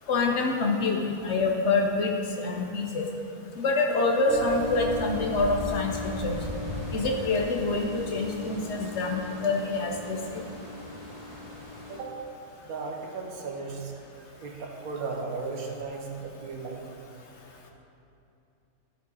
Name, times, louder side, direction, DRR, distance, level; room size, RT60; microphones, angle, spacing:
voice 1, 0.1-2.1 2.4-3.1 3.6-5.9 6.2-6.4 6.9-10.4, left 3 dB, 55° left, 1 dB, 0.9 m, -26 dB
sound 1, 4.3-12.0, left 2 dB, 40° left, 2.6 m, -36 dB
voice 2, 12.6-13.9 14.4-16.8, right 4 dB, 75° right, 0 dB, 1.5 m, -35 dB
13.0 x 5.3 x 4.0 m, 2.7 s
omnidirectional pair, 1.5 m